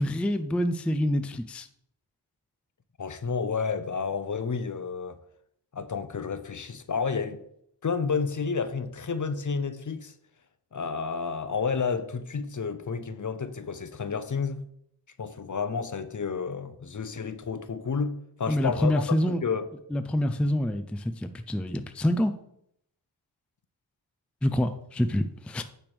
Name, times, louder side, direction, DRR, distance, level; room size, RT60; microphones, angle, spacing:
voice 1, 0.0-1.7 18.5-19.4 19.9-22.3 24.4-25.6, left 1 dB, 5° left, 0.4 m, -26 dB
voice 2, 3.0-5.2 5.7-7.4 7.8-10.1 10.7-14.6 15.2-19.7, left 5 dB, 45° left, 0.6 m, -31 dB
8.8 x 3.4 x 6.1 m
wide cardioid pair, 110°, 43 cm